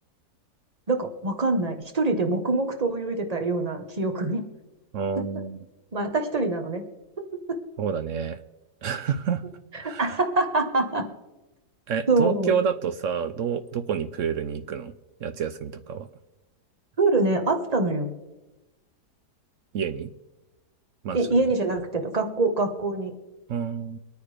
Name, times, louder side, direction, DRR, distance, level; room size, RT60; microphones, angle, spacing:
voice 1, 0.9-4.4 5.2-5.3 5.9-6.8 7.3-7.6 9.7-11.0 12.1-12.6 17.0-18.1 21.1-23.1, right 2 dB, 25° right, 5 dB, 1.2 m, -25 dB
voice 2, 4.9-5.6 7.8-8.4 8.8-9.4 9.7-10.2 11.9-14.9 15.2-16.1 19.7-20.1 21.0-21.2 23.5-24.0, right 7 dB, 65° right, 11 dB, 0.8 m, -28 dB
24.0 x 9.5 x 3.4 m, 1.0 s
omnidirectional pair, 1.7 m